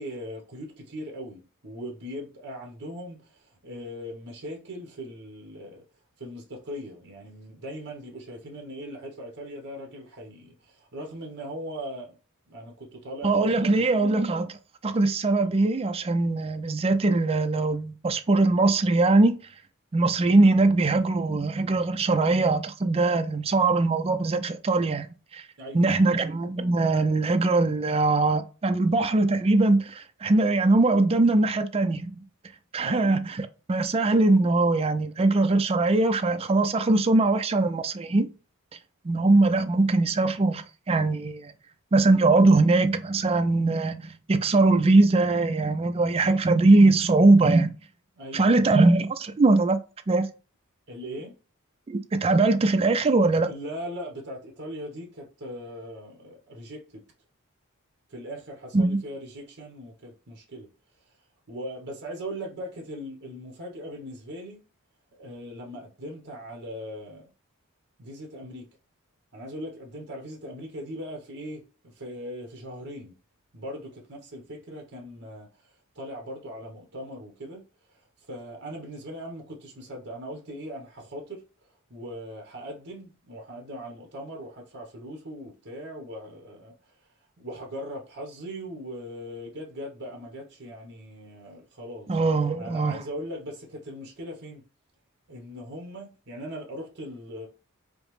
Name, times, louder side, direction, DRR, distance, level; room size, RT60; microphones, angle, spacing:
voice 1, 0.0-5.8 6.2-12.2 12.5-13.9 25.6-26.2 32.8-33.2 48.2-48.8 50.9-51.4 53.5-57.0 58.1-60.7 61.1-61.2 61.5-64.6 65.2-67.3 68.0-68.7 69.3-73.1 73.5-77.6 77.9-78.0 78.3-81.4 81.9-86.7 87.4-92.2 92.6-94.6 95.3-97.5, equal, 50° right, 1.0 m, -39 dB
voice 2, 13.2-14.6 14.8-19.4 19.9-25.1 25.3-25.4 25.7-32.2 32.7-38.3 39.0-41.5 41.9-47.7 48.3-49.8 50.1-50.3 51.9-53.5 58.7-59.0 92.1-93.0, right 2 dB, 25° right, 0.4 m, -21 dB
5.0 x 2.0 x 3.1 m
head